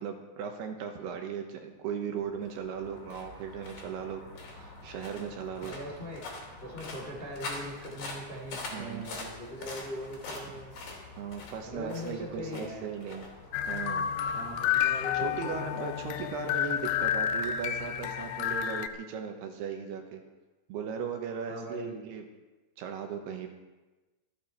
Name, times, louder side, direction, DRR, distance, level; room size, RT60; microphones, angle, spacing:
voice 1, 0.0-4.2 4.5-5.7 8.7-9.1 11.2-13.3 13.7-14.1 15.2-20.2 20.7-22.2 22.8-23.5, right 7 dB, 75° right, 4 dB, 2.9 m, -37 dB
sound 1, 2.1-15.5, left 2 dB, 50° left, 4.2 m, -45 dB
voice 2, 5.6-6.3 6.6-10.7 11.6-12.9 14.3-15.8 21.5-22.0, equal, 20° left, -1 dB, 1.6 m, -40 dB
sound 2, 13.5-18.9, left 9 dB, 85° left, 2.9 m, -30 dB
25.5 x 9.0 x 4.5 m, 1.2 s
omnidirectional pair, 5.2 m